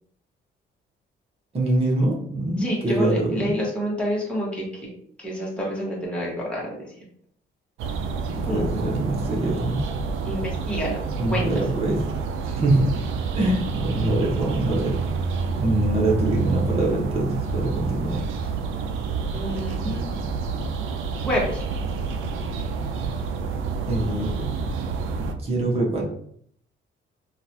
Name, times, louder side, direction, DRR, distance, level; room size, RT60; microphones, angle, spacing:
voice 1, 1.5-3.5 8.3-9.8 11.2-12.0 12.4-12.9 13.3-15.0 15.6-18.2 23.9-24.4 25.1-26.0, right 1 dB, 30° right, -4 dB, 1.0 m, -24 dB
voice 2, 2.6-4.7 5.2-6.8 8.4-8.7 10.2-11.0 11.3-11.5 19.3-20.0 21.2-21.6, equal, 5° left, -5 dB, 1.3 m, -28 dB
sound 1, 7.8-25.3, right 4 dB, 85° right, 0.4 m, -28 dB
3.8 x 2.4 x 2.7 m, 0.63 s
cardioid pair, 90°, 20 cm